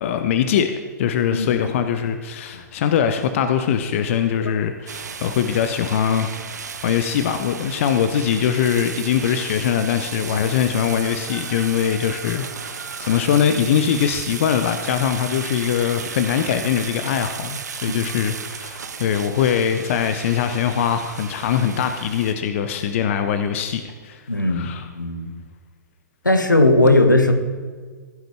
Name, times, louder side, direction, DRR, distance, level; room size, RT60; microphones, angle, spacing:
voice 1, 0.0-24.2 24.5-24.9, left 8 dB, 45° left, 8 dB, 0.6 m, -22 dB
sound 1, 4.9-22.3, right 6 dB, 60° right, 0.8 m, -34 dB
voice 2, 24.3-25.3 26.2-27.3, left 2 dB, 85° left, 7 dB, 1.1 m, -17 dB
15.5 x 7.7 x 3.5 m, 1.6 s
figure-of-eight pair, 110°, 10 cm